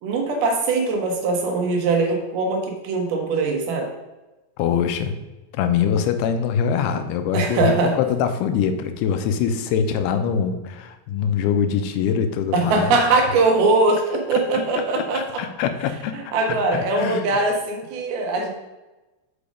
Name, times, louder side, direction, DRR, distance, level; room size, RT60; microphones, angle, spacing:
voice 1, 0.0-3.9 7.3-7.9 12.5-15.4 16.1-18.5, right 3 dB, 75° right, 2 dB, 3.0 m, -21 dB
voice 2, 4.6-5.2 5.5-12.9 14.3-14.4 15.0-17.3, left 7 dB, 85° left, 8 dB, 2.6 m, -23 dB
6.9 x 5.2 x 5.0 m, 1.1 s
omnidirectional pair, 4.5 m